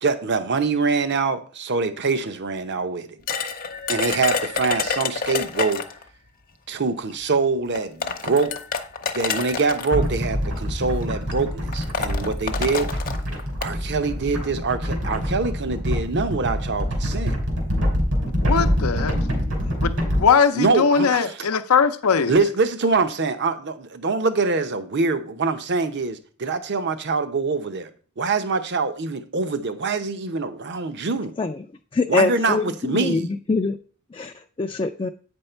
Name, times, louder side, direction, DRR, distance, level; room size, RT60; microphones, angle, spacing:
voice 1, 0.0-3.1 3.9-5.8 6.7-8.5 9.1-12.9 13.6-17.4 20.6-21.4 22.3-27.9 28.2-31.3 32.1-33.3, right 4 dB, 55° right, 0.7 m, -24 dB
sound 1, 3.3-6.0 7.1-7.2 7.8-9.9 10.8-11.0 11.3-11.4 11.7-13.7, left 5 dB, 40° left, 0.7 m, -28 dB
sound 2, 9.9-20.2, equal, 85° right, 3.1 m, -25 dB
voice 2, 18.4-19.1 19.8-22.3, left 6 dB, 90° left, 0.6 m, -20 dB
voice 3, 31.9-33.8 34.1-35.1, left 3 dB, 25° left, 0.4 m, -24 dB
8.7 x 5.3 x 4.4 m
head